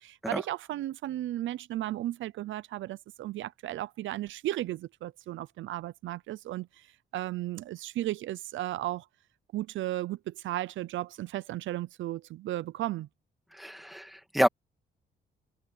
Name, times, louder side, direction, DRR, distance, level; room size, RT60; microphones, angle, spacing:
voice 1, 0.0-9.1 9.5-13.1, right 14 dB, 75° right, 0.6 m, -35 dB
voice 2, 13.5-14.5, equal, ahead, 2.2 m, -28 dB
cardioid pair, 90°, 20 cm